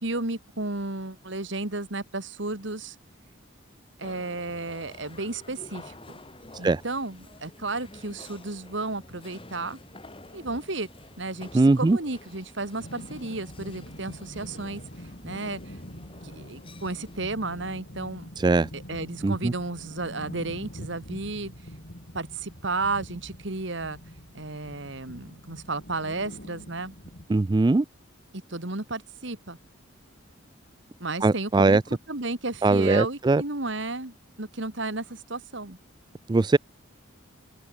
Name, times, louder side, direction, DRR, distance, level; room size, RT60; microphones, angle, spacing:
voice 1, 0.0-3.0 4.0-6.2 6.6-9.8 10.3-10.9 11.2-14.8 15.2-15.8 16.2-18.3 18.7-21.5 22.1-24.0 24.3-26.9 28.5-29.6 31.0-31.8 32.1-35.8, right 2 dB, 60° right, 2.3 m, -33 dB
sound 1, 4.0-17.2, left 2 dB, 25° left, 2.9 m, -49 dB
voice 2, 11.5-12.0 18.4-18.7 19.2-19.5 27.3-27.9 31.2-31.8 32.6-33.4 36.3-36.6, right 3 dB, 20° right, 0.3 m, -20 dB
sound 2, 12.8-27.3, equal, 50° left, 7.6 m, -44 dB
open air
head